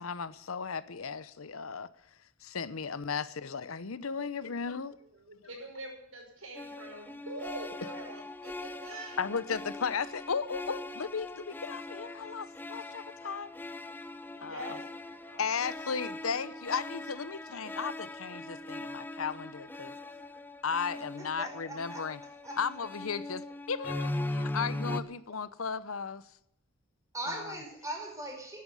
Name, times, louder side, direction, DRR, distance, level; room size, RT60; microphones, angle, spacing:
voice 1, 0.0-1.9 2.4-5.0 9.2-13.5 14.4-14.7 15.4-20.0 20.6-22.2 22.6-26.2 27.3-27.4, left 5 dB, 90° left, 0.8 m, -35 dB
voice 2, 4.2-4.5 5.0-9.3 14.3-15.4, right 1 dB, 80° right, 5.6 m, -45 dB
sound 1, 6.5-25.0, left 2 dB, 10° left, 0.7 m, -40 dB
voice 3, 20.9-22.0 22.4-22.6 27.1-28.6, right 1 dB, 15° right, 5.1 m, -40 dB
12.5 x 9.5 x 9.8 m
head